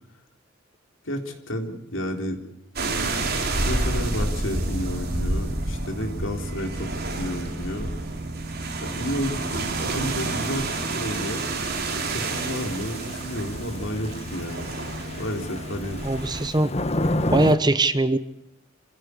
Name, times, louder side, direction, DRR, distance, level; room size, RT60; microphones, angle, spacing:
voice 1, 1.0-2.4 3.6-7.9 8.8-11.5 12.1-14.7 15.1-16.0, left 1 dB, 70° left, 4 dB, 4.0 m, -31 dB
sound 1, 2.8-16.5, right 2 dB, 50° right, 4.1 m, -29 dB
Thunder / Rain, 10.4-17.6, left 1 dB, 30° left, 1.4 m, -31 dB
voice 2, 16.0-16.7 17.3-18.2, right 2 dB, 20° right, 12 dB, 0.9 m, -21 dB
27.5 x 16.0 x 8.5 m, 0.86 s
head